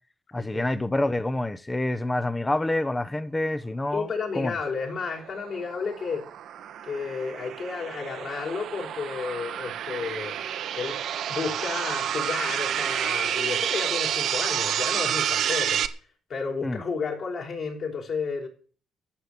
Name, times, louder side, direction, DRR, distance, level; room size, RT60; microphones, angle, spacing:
voice 1, 0.3-4.6 16.6-16.8, left 1 dB, 15° left, 0.9 m, -27 dB
voice 2, 3.9-6.3 6.8-10.4 10.8-11.0 11.3-15.8 16.3-18.5, left 5 dB, 60° left, 5.2 m, -32 dB
sound 1, 5.0-15.9, right 9 dB, 75° right, 1.1 m, -29 dB
14.5 x 6.7 x 9.0 m
cardioid pair, 90°, 0 cm